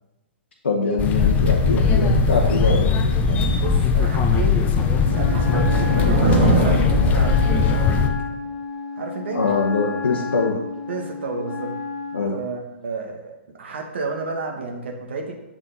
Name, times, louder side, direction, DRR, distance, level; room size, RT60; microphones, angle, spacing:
voice 1, 0.6-3.6 9.3-10.6 12.1-12.4, left 4 dB, 75° left, -1 dB, 0.9 m, -23 dB
sound 1, 1.0-8.1, left 5 dB, 25° left, 0.6 m, -19 dB
voice 2, 3.6-8.1 9.0-9.5 10.9-11.7 12.2-15.3, right 3 dB, 70° right, 2 dB, 1.1 m, -31 dB
sound 2, 5.0-7.8, right 3 dB, 55° right, 1.5 m, -23 dB
Wind instrument woodwind instrument, 5.1-12.3, left 4 dB, 40° left, 1.2 m, -32 dB
7.4 x 3.8 x 3.9 m, 0.94 s
figure-of-eight pair, 115°, 6 cm